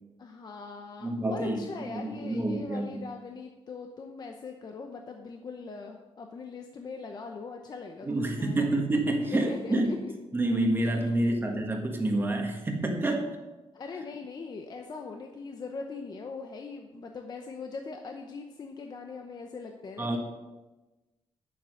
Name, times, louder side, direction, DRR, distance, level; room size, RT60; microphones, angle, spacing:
voice 1, 0.2-8.6 9.2-10.0 11.0-11.6 13.7-20.2, left 4 dB, 40° left, 3 dB, 0.8 m, -41 dB
voice 2, 1.0-3.0 8.0-9.9 10.3-13.3 20.0-20.2, right 1 dB, 20° right, 2 dB, 1.5 m, -28 dB
9.5 x 7.6 x 6.4 m, 1.1 s
wide cardioid pair, 155°, 10 cm